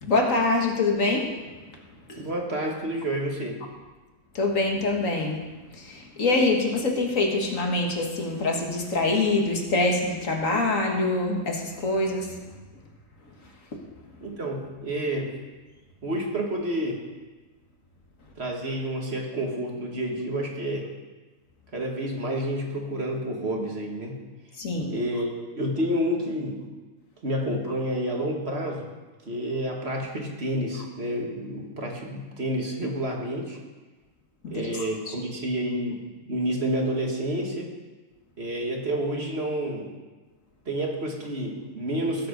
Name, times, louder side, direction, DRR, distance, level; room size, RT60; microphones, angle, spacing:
voice 1, 0.0-1.3 2.1-2.2 4.4-5.4 5.8-12.3 24.6-25.0 34.4-34.7 35.1-35.2, left 2 dB, 65° left, 2 dB, 2.0 m, -25 dB
voice 2, 2.2-3.6 14.2-15.4 16.0-17.0 18.4-20.9 21.7-24.2 24.9-26.6 27.2-28.9 29.3-33.6 34.5-37.7 38.4-39.9 40.7-42.3, right 1 dB, 45° right, 0 dB, 2.0 m, -29 dB
17.0 x 7.9 x 5.2 m, 1.3 s
omnidirectional pair, 1.5 m